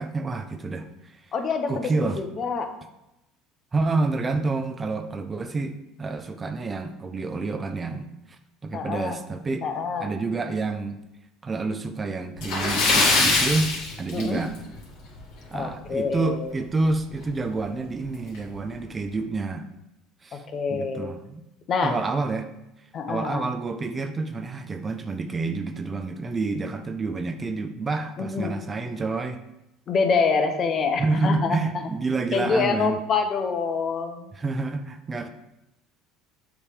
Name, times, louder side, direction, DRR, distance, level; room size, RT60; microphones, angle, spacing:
voice 1, 0.0-1.2 1.7-2.2 3.7-9.7 10.0-11.0 11.4-14.5 15.5-19.7 20.2-20.4 20.7-21.4 21.8-22.5 23.1-29.4 31.0-33.0 34.4-35.3, right 3 dB, 25° right, 8 dB, 0.5 m, -28 dB
voice 2, 1.3-2.7 8.7-9.2 9.6-10.1 14.1-14.4 15.5-16.5 20.3-21.1 21.7-22.0 22.9-23.5 28.2-28.6 29.9-31.9 32.3-34.3, left 5 dB, 45° left, 6 dB, 0.9 m, -26 dB
Splash splatter, 12.4-14.7 15.1-15.2 15.7-15.8 17.2-17.3 17.6-17.7 18.3-18.6, left 3 dB, 65° left, 2.1 m, -22 dB
7.1 x 3.4 x 5.0 m, 0.89 s
supercardioid pair, 95°, 0 cm